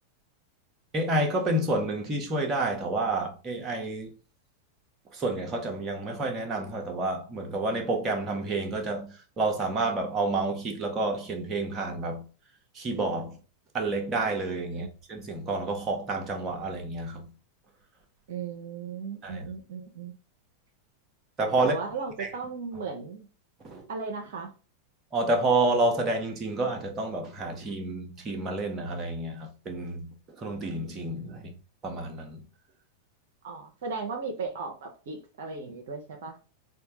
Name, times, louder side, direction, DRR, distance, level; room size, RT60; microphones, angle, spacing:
voice 1, 0.9-4.1 5.1-12.2 12.7-13.4 13.7-17.2 19.2-19.5 21.4-21.7 22.2-22.3 23.6-23.9 25.1-31.5 31.8-32.4, right 2 dB, 25° right, 0.9 m, -29 dB
voice 2, 18.3-20.1 21.6-23.3 23.9-24.5 33.4-36.4, right 4 dB, 55° right, 0.7 m, -36 dB
4.4 x 2.2 x 2.9 m
figure-of-eight pair, 90°, 0 cm